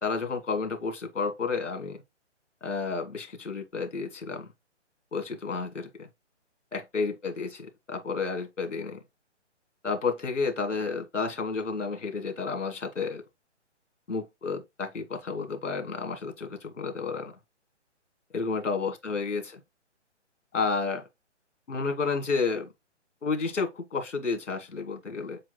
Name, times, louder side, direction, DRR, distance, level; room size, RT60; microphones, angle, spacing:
voice 1, 0.0-2.0 2.6-4.5 5.1-6.1 6.7-9.0 9.8-13.2 14.1-17.3 18.3-19.6 20.5-21.0 21.7-22.7 23.2-25.4, left 4 dB, 80° left, 1.9 m, -31 dB
7.3 x 3.1 x 2.3 m
figure-of-eight pair, 140°, 36 cm